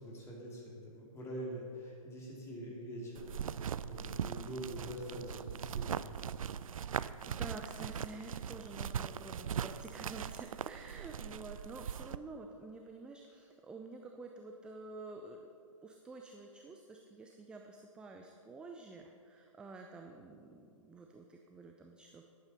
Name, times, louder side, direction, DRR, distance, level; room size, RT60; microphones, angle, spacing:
voice 1, 0.0-6.0, equal, 15° left, -3 dB, 2.5 m, -45 dB
sound 1, 3.2-12.2, right 8 dB, 75° right, 0.4 m, -40 dB
voice 2, 6.6-15.4 15.8-22.2, right 3 dB, 5° right, 3 dB, 0.4 m, -50 dB
10.5 x 9.0 x 5.5 m, 2.4 s
figure-of-eight pair, 130°, 18 cm